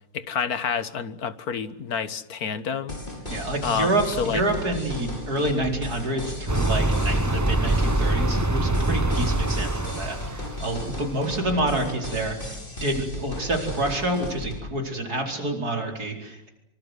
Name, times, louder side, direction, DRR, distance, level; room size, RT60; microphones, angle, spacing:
voice 1, 0.1-3.0 3.6-4.4, left 6 dB, 60° left, 13 dB, 1.8 m, -28 dB
sound 1, 2.9-14.6, left 1 dB, 30° left, 6.4 m, -35 dB
voice 2, 3.3-16.5, right 1 dB, 65° right, 3 dB, 5.1 m, -28 dB
sound 2, 6.5-10.8, right 1 dB, 15° right, 0.7 m, -24 dB
25.5 x 25.0 x 8.1 m, 0.81 s
omnidirectional pair, 1.8 m